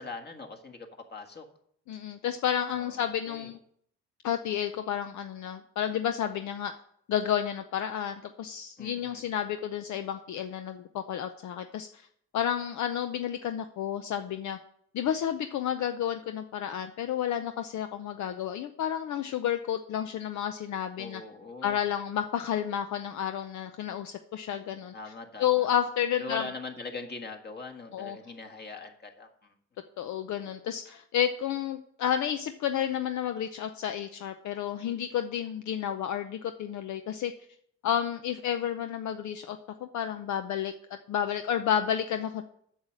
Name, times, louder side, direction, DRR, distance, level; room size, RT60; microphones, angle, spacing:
voice 1, 0.0-1.5 2.7-3.5 8.8-9.2 21.0-21.8 24.9-25.7 26.2-29.5, left 3 dB, 35° left, 4 dB, 1.8 m, -42 dB
voice 2, 1.9-3.6 4.2-6.7 7.1-11.9 12.3-14.6 14.9-21.2 21.6-24.9 25.4-26.4 27.9-28.2 30.0-37.3 37.8-40.7 41.1-42.4, left 9 dB, 70° left, 8 dB, 0.6 m, -31 dB
8.0 x 6.6 x 7.4 m, 0.68 s
cardioid pair, 90°, 30 cm